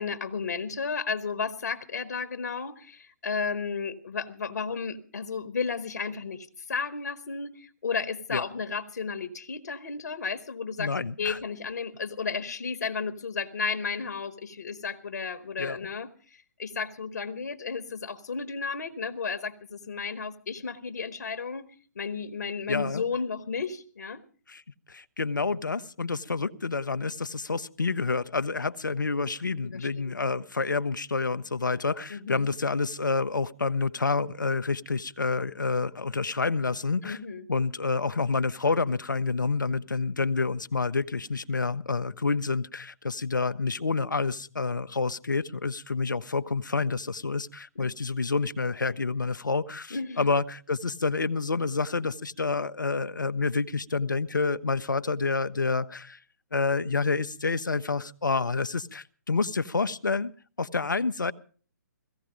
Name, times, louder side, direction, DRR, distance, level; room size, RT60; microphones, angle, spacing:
voice 1, 0.0-10.9 11.2-21.7 21.9-24.2 29.6-30.2 32.1-32.5 37.0-37.5 47.7-47.9 49.9-50.3, left 5 dB, 65° left, 10 dB, 1.3 m, -33 dB
voice 2, 10.8-11.4 15.6-15.8 22.7-23.0 24.5-24.6 24.9-37.2 37.5-56.2 56.5-60.3 60.6-61.3, left 4 dB, 80° left, 12 dB, 0.8 m, -28 dB
17.0 x 15.5 x 5.0 m, 0.42 s
figure-of-eight pair, 135°, 10 cm